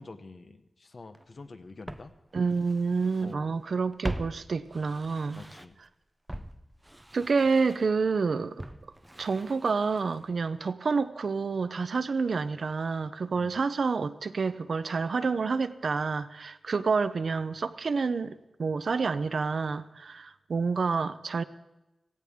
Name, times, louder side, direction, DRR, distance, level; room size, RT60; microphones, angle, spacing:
voice 1, 0.0-2.1 3.2-3.5 5.3-5.8 13.4-13.5, left 3 dB, 45° left, 1.0 m, -47 dB
Walk footsteps, 1.1-1.2 1.9-3.3 3.6-5.9 6.3-10.3 10.6-10.7, right 1 dB, 10° right, 0.5 m, -42 dB
voice 2, 2.3-5.4 7.1-8.6 9.2-21.4, right 4 dB, 60° right, 0.6 m, -28 dB
17.0 x 16.5 x 3.6 m
wide cardioid pair, 145°, 0 cm